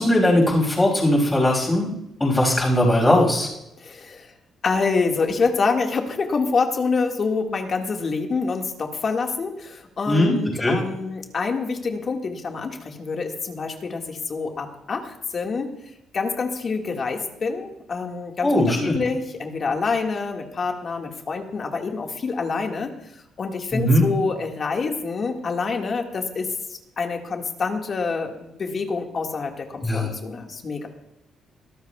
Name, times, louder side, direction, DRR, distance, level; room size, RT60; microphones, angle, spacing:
voice 1, 0.0-1.9 2.2-3.5 10.1-10.8 18.4-19.0 23.7-24.1 29.8-30.1, left 1 dB, 15° left, -1 dB, 5.9 m, -19 dB
voice 2, 3.8-4.3 4.6-15.7 16.1-22.9 23.4-30.9, left 4 dB, 45° left, 2 dB, 1.8 m, -26 dB
23.5 x 13.0 x 2.4 m, 0.85 s
cardioid pair, 90°, 0 cm